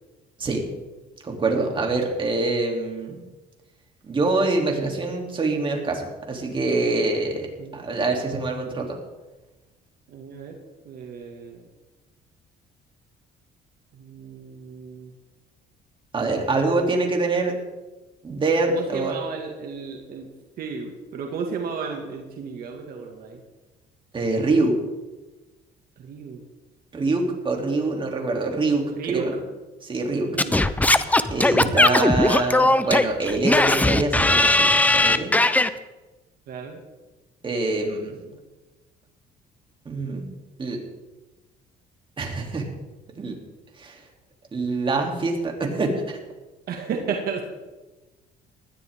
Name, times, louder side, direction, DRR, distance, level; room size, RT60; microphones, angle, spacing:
voice 1, 1.2-3.2 4.1-7.5 7.7-9.0 16.1-17.5 18.2-19.1 24.1-24.7 26.9-29.3 29.8-30.3 31.3-35.3 37.4-38.1 39.8-40.2 40.6-40.8 42.2-42.7 43.1-43.4 43.8-44.0 44.5-46.2, right 3 dB, 30° right, 1 dB, 3.0 m, -25 dB
voice 2, 10.1-10.6 10.9-11.6 13.9-15.1 18.7-20.3 20.6-23.4 26.0-26.4 29.0-29.3 30.2-30.6 36.5-36.8 37.8-37.9 38.2-38.4 46.7-47.4, right 6 dB, 60° right, 2 dB, 2.1 m, -33 dB
Singing / Scratching (performance technique), 30.4-35.7, left 2 dB, 10° left, 0.7 m, -18 dB
19.5 x 13.0 x 3.7 m, 1.1 s
cardioid pair, 110°, 17 cm